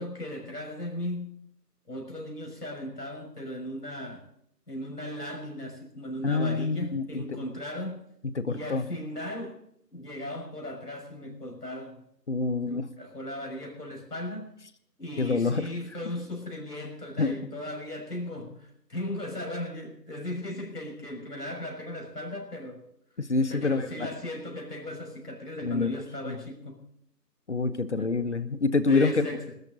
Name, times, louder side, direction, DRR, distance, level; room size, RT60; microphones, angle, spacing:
voice 1, 0.0-1.4 1.9-4.3 4.7-8.0 8.5-9.6 9.9-12.0 12.7-14.5 15.0-22.8 23.5-26.8 28.0-28.1 28.9-29.4, left 1 dB, 70° left, 1 dB, 6.3 m, -37 dB
voice 2, 6.2-7.4 8.3-8.8 12.3-12.9 15.2-15.7 17.2-17.5 23.2-24.1 25.6-25.9 26.2-26.4 27.5-29.2, left 4 dB, 45° left, 13 dB, 1.2 m, -27 dB
22.0 x 13.5 x 4.0 m, 0.71 s
figure-of-eight pair, 155°, 49 cm